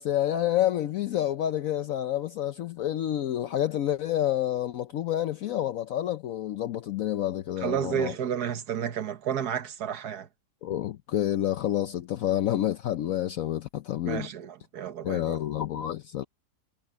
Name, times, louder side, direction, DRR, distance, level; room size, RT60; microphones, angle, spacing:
voice 1, 0.0-8.1 10.6-14.3 15.0-16.2, left 12 dB, 65° left, 1.0 m, -28 dB
voice 2, 7.6-10.3 14.1-15.4, right 8 dB, 80° right, 1.7 m, -31 dB
omnidirectional pair, 1.7 m